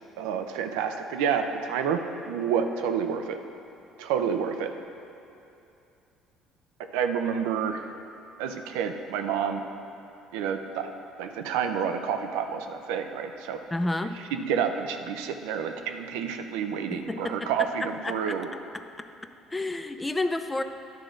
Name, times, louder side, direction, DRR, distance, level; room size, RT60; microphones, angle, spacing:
voice 1, 0.2-2.0 2.3-3.4 4.0-4.7 6.9-7.8 8.4-9.6 10.3-10.9 11.2-13.6 14.3-18.5, right 7 dB, 85° right, 6 dB, 0.5 m, -29 dB
voice 2, 13.7-14.2 16.9-18.4 18.7-18.8 19.5-20.6, left 2 dB, 15° left, 8 dB, 0.5 m, -30 dB
10.5 x 3.8 x 6.4 m, 2.8 s
supercardioid pair, 85°, 0 cm